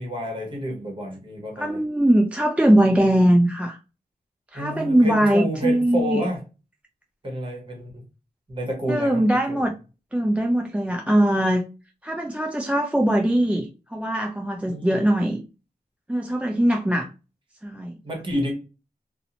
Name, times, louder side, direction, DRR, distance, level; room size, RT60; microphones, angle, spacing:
voice 1, 0.0-1.8 4.5-6.4 7.2-8.1 8.5-9.2 9.5-9.6 14.6-15.0 18.0-18.5, equal, 30° right, 1.0 m, -29 dB
voice 2, 1.6-3.8 4.5-6.2 8.9-9.7 10.1-11.6 12.0-15.4 16.1-17.1 17.6-18.0, right 1 dB, 5° right, 0.3 m, -21 dB
2.5 x 2.1 x 2.7 m
wide cardioid pair, 95°, 16 cm